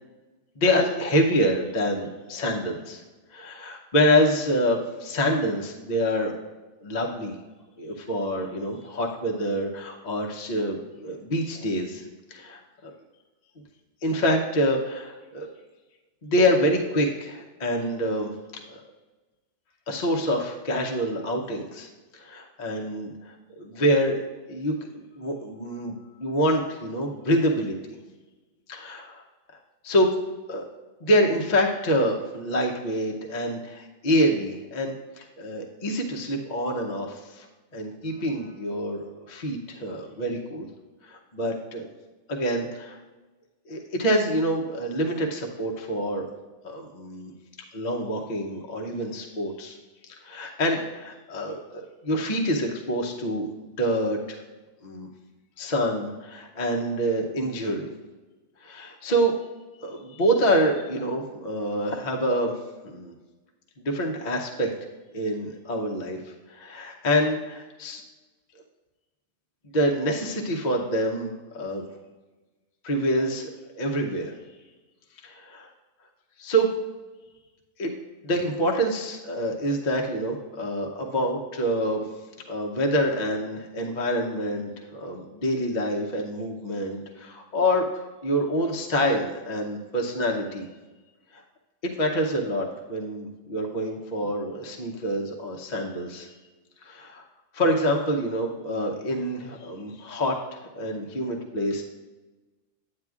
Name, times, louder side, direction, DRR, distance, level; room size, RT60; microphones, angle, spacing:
voice 1, 0.6-3.0 3.3-6.3 6.8-7.3 7.8-12.0 12.3-12.9 14.0-15.5 16.2-18.3 18.7-18.8 19.9-21.9 22.1-28.0 28.7-29.2 29.8-30.1 30.5-30.6 31.0-37.5 37.7-40.7 41.0-41.9 42.3-43.0 43.7-46.3 46.6-47.3 47.7-49.8 50.1-54.4 54.8-55.1 55.6-57.9 58.6-59.3 59.8-62.5 62.8-63.1 63.8-64.7 65.1-66.2 66.5-68.0 69.7-71.9 72.8-74.3 75.2-75.7 76.4-76.7 77.8-77.9 78.2-82.0 82.5-87.9 88.2-90.7 91.3-91.4 91.8-96.3 96.8-97.2 97.5-101.8, equal, 40° left, 0 dB, 0.8 m, -26 dB
9.2 x 8.6 x 2.4 m, 1.2 s
omnidirectional pair, 1.3 m